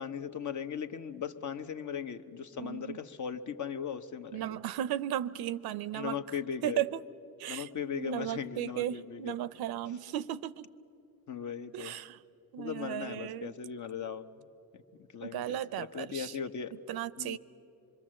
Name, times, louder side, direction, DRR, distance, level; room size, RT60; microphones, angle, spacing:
voice 1, 0.0-4.6 5.9-6.8 7.5-9.4 11.3-12.0 12.6-14.3 14.7-14.8 15.1-16.7 17.2-17.4, left 7 dB, 50° left, 1.0 m, -38 dB
voice 2, 2.6-3.0 4.3-6.2 6.6-7.0 7.4-10.7 11.7-12.2 12.5-13.6 15.2-16.4 16.9-17.4, right 12 dB, 75° right, 0.6 m, -35 dB
25.5 x 22.5 x 7.6 m
cardioid pair, 90°, 37 cm